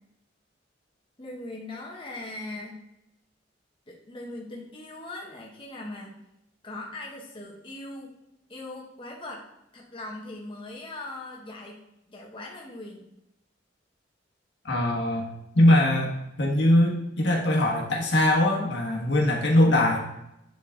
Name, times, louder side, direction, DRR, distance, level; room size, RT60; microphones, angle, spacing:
voice 1, 1.2-2.8 3.9-6.2 6.6-8.1 8.5-9.4 9.7-11.8 12.1-13.1, left 2 dB, 25° left, -2 dB, 1.1 m, -40 dB
voice 2, 14.6-15.3 15.5-20.0, left 1 dB, 65° left, -1 dB, 1.5 m, -21 dB
9.9 x 3.9 x 3.6 m, 0.85 s
head